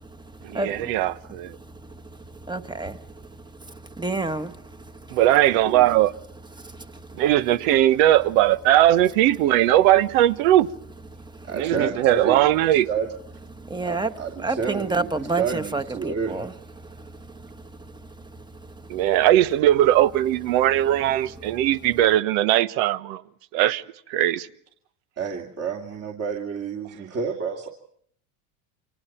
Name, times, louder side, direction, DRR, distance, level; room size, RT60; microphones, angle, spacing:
voice 1, 0.4-1.5 5.1-6.1 7.2-10.7 11.5-12.9 18.9-23.2 23.5-23.8 24.1-24.5, right 13 dB, 75° right, 1.3 m, -19 dB
voice 2, 2.5-3.0 4.0-4.5 13.7-14.1 14.4-16.5, right 3 dB, 10° right, 1.3 m, -27 dB
voice 3, 5.5-5.9 11.4-12.4 12.9-13.1 13.8-16.4 25.2-27.7, right 6 dB, 35° right, 2.8 m, -29 dB
29.5 x 25.5 x 4.5 m
supercardioid pair, 125°, 42 cm